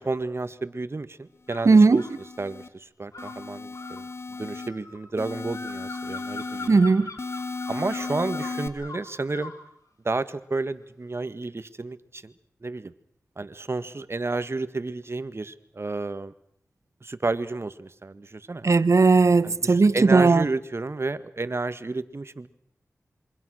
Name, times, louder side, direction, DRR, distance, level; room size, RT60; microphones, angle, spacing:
voice 1, 0.0-2.1 2.4-4.1 4.4-6.8 7.7-9.5 10.0-12.3 12.6-12.9 13.4-16.3 17.0-18.6 19.4-22.5, right 3 dB, 50° right, 1.7 m, -31 dB
sound 1, 1.5-2.2 3.1-9.6, left 3 dB, 80° left, 5.9 m, -42 dB
sound 2, 1.6-2.7 3.2-4.7 5.2-6.7 7.2-8.7, left 3 dB, 50° left, 2.8 m, -35 dB
voice 2, 1.6-2.0 6.7-7.1 18.6-20.4, right 4 dB, 65° right, 1.2 m, -17 dB
27.5 x 24.0 x 6.4 m
cardioid pair, 45°, 6 cm